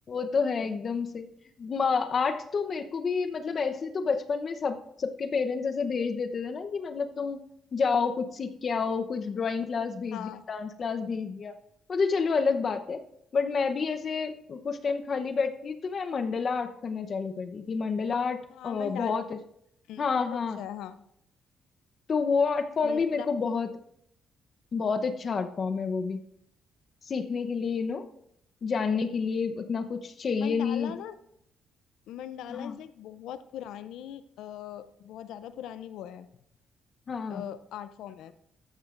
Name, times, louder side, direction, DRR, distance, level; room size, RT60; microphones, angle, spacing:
voice 1, 0.1-1.3 1.6-7.4 7.7-11.6 11.9-13.0 13.3-19.4 20.0-20.6 22.1-23.8 24.7-26.2 27.0-28.1 28.6-31.0 32.5-32.8 37.1-37.4, left 5 dB, 45° left, 8 dB, 0.8 m, -29 dB
voice 2, 10.1-10.4 18.5-19.1 19.9-21.0 22.8-23.3 30.4-31.2 32.1-36.3 37.3-38.3, left 10 dB, 85° left, 13 dB, 0.4 m, -40 dB
13.0 x 9.1 x 2.5 m, 0.74 s
cardioid pair, 90°, 0 cm